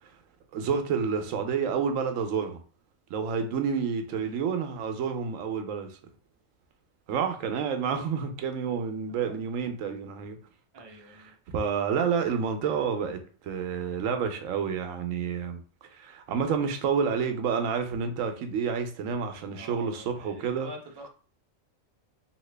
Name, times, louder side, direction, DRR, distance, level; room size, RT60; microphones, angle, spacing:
voice 1, 0.5-2.6 3.1-6.0 7.1-10.4 11.5-20.7, right 6 dB, 90° right, 1.0 m, -29 dB
voice 2, 9.1-9.4 10.7-11.4 19.5-21.1, equal, 30° right, 0.5 m, -46 dB
2.9 x 2.8 x 3.2 m
omnidirectional pair, 1.3 m